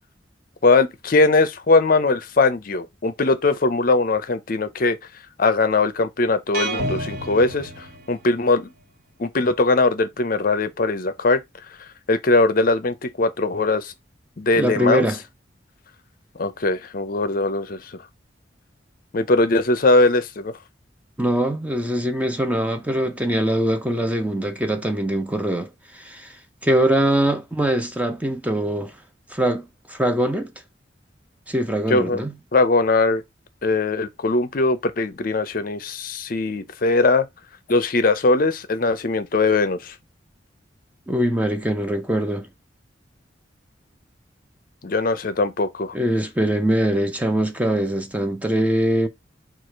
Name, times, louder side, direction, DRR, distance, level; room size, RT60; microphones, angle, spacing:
voice 1, 0.6-5.0 5.4-8.7 9.2-11.4 12.1-13.9 14.4-15.1 16.4-17.9 19.1-20.5 31.9-32.2 32.5-33.2 33.6-37.3 37.7-39.9 44.8-46.0, left 3 dB, 50° left, 0.6 m, -20 dB
sound 1, 6.5-8.5, right 1 dB, 50° right, 1.3 m, -30 dB
voice 2, 14.6-15.2 21.2-26.4 26.6-28.9 29.3-30.5 31.5-32.3 41.1-42.5 45.9-49.1, right 1 dB, 10° right, 0.6 m, -22 dB
4.7 x 2.4 x 4.5 m
head